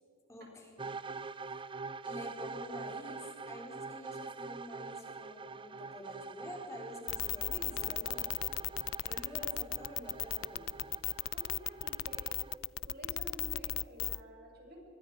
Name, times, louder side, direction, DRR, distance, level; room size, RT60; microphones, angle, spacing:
voice 1, 0.3-0.9 1.4-1.7 2.0-10.9, left 1 dB, 15° left, 0 dB, 4.2 m, -48 dB
sound 1, 0.8-12.6, right 4 dB, 25° right, 0.6 m, -45 dB
sound 2, 7.1-14.2, left 15 dB, 80° left, 0.4 m, -35 dB
voice 2, 11.3-12.3 12.9-14.8, equal, 50° right, 0 dB, 6.5 m, -50 dB
25.0 x 23.0 x 4.8 m, 2.7 s
head